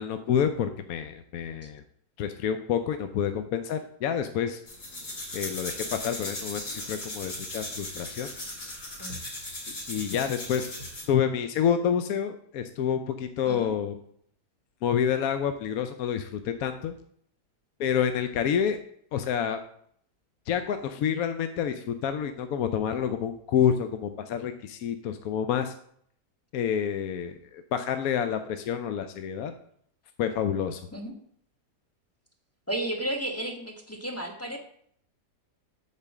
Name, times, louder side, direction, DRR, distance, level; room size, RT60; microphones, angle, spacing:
voice 1, 0.0-1.8 2.2-4.6 5.3-8.3 9.7-10.7 11.1-13.9 14.8-16.9 17.8-18.8 19.1-19.6 20.5-25.7 26.5-29.5 30.2-30.8, left 8 dB, 70° left, 9 dB, 1.0 m, -28 dB
sound 1, 4.7-11.1, left 1 dB, 50° left, 2.7 m, -37 dB
voice 2, 32.7-34.6, right 1 dB, 10° left, 4 dB, 0.9 m, -33 dB
8.4 x 4.5 x 7.2 m, 0.65 s
omnidirectional pair, 1.8 m